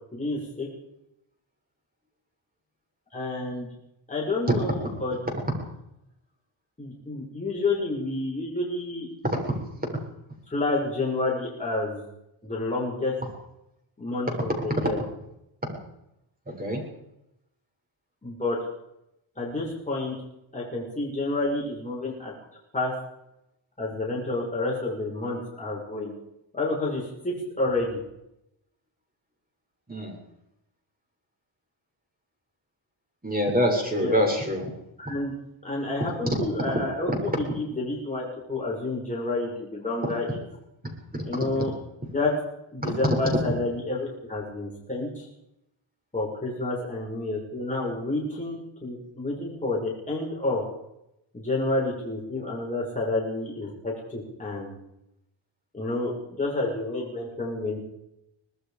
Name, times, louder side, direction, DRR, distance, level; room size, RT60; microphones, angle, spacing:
voice 1, 0.1-0.7 3.1-3.7 4.1-5.2 6.8-9.1 10.5-12.0 12.4-13.1 14.0-15.0 18.2-18.6 19.4-20.1 20.5-22.3 22.7-22.9 23.8-26.1 26.5-28.0 34.0-34.2 35.0-35.3 35.6-40.4 41.2-41.7 42.1-42.3 42.7-45.3 46.1-50.6 51.3-54.8 55.7-57.8, left 2 dB, 15° left, -4 dB, 6.8 m, -29 dB
voice 2, 16.5-16.8 29.9-30.1 33.2-34.6 41.1-41.2, equal, 15° right, 1 dB, 7.3 m, -25 dB
25.0 x 19.5 x 5.3 m, 0.84 s
wide cardioid pair, 130°, 49 cm